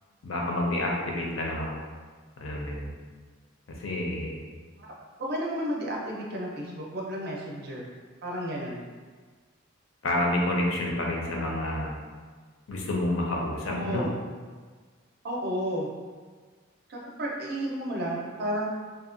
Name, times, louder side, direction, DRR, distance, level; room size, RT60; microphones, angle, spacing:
voice 1, 0.2-1.8 2.4-2.9 3.8-4.4 10.0-12.0 12.7-14.1, left 1 dB, 70° left, -2 dB, 0.5 m, -29 dB
voice 2, 5.2-7.9 8.2-8.8 13.6-14.1 15.2-15.9 16.9-18.7, equal, 45° right, -3 dB, 0.4 m, -32 dB
2.7 x 2.1 x 2.5 m, 1.5 s
head